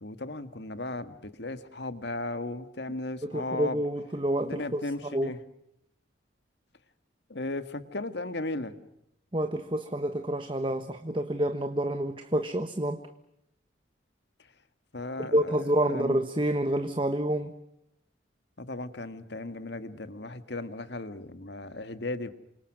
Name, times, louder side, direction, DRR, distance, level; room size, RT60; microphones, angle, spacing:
voice 1, 0.0-3.8 4.4-5.4 7.3-8.7 14.9-15.6 15.9-16.2 18.6-22.3, left 2 dB, 65° left, 10 dB, 1.9 m, -36 dB
voice 2, 3.2-5.3 9.3-13.0 15.2-17.5, right 1 dB, 25° right, 8 dB, 1.3 m, -28 dB
28.5 x 26.0 x 6.2 m, 0.79 s
head